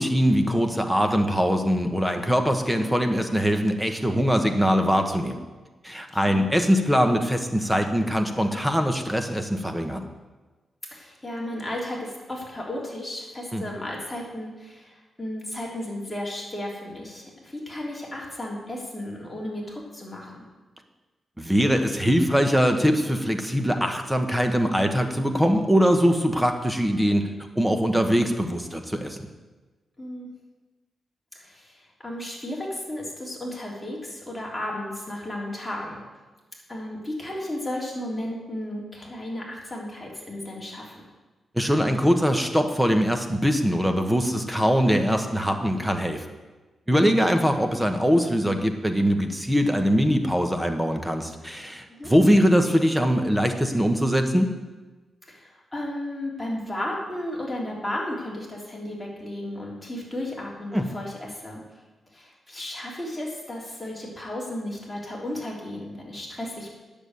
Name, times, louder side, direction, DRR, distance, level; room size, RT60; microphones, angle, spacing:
voice 1, 0.0-5.4 5.8-10.0 13.5-13.6 21.4-27.3 27.5-29.2 41.5-46.2 46.9-54.5 60.7-60.9, equal, 5° right, 5 dB, 1.2 m, -22 dB
voice 2, 6.1-6.5 10.9-20.4 30.0-30.3 31.3-36.0 36.7-40.9 51.9-52.1 55.3-61.6 62.1-66.7, left 1 dB, 10° left, -4 dB, 3.4 m, -34 dB
9.9 x 7.1 x 8.2 m, 1.2 s
cardioid pair, 95°, 0 cm